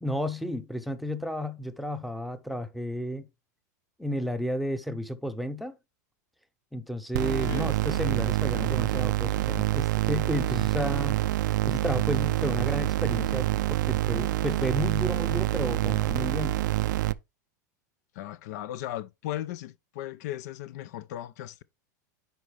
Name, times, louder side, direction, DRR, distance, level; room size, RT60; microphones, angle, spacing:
voice 1, 0.0-3.3 4.0-5.8 6.7-11.2 11.7-16.6, equal, ahead, 0.7 m, -32 dB
sound 1, 7.1-17.1, right 16 dB, 80° right, 0.4 m, -26 dB
voice 2, 7.2-7.7 18.1-21.6, left 13 dB, 65° left, 0.4 m, -37 dB
10.0 x 4.1 x 3.3 m
hypercardioid pair, 120°, 10 cm